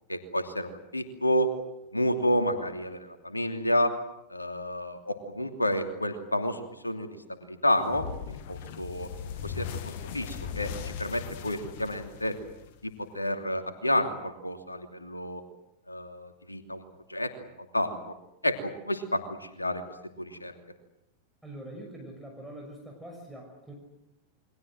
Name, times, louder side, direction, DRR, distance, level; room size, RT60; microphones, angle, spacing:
voice 1, 0.1-1.5 1.9-3.9 4.3-9.1 9.4-12.4 12.8-15.4 15.9-16.8 17.1-17.5 17.7-18.1 18.4-19.8 20.2-20.5, left 1 dB, 85° left, 7 dB, 2.8 m, -30 dB
sound 1, 7.9-13.0, left 8 dB, 50° left, 2.0 m, -38 dB
voice 2, 21.4-23.7, right 1 dB, 5° right, 0 dB, 6.0 m, -44 dB
29.0 x 23.0 x 7.7 m, 0.86 s
figure-of-eight pair, 90°, 0 cm